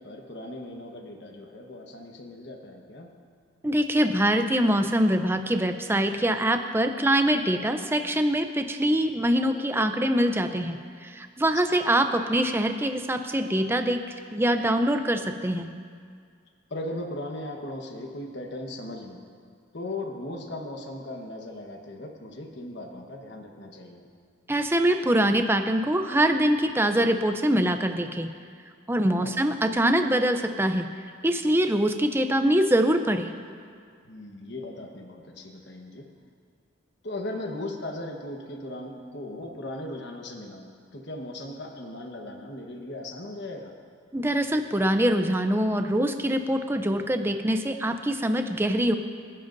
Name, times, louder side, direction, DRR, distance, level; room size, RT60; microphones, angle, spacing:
voice 1, 0.0-3.1 11.7-11.8 16.7-19.2 19.7-24.1 29.0-29.4 34.0-36.1 37.0-43.7, left 1 dB, 55° left, 2 dB, 1.2 m, -38 dB
voice 2, 3.6-14.0 14.3-15.7 24.5-28.3 28.9-30.9 31.2-33.3 44.1-48.9, right 1 dB, 10° right, 7 dB, 0.5 m, -24 dB
27.0 x 10.5 x 2.6 m, 2.1 s
head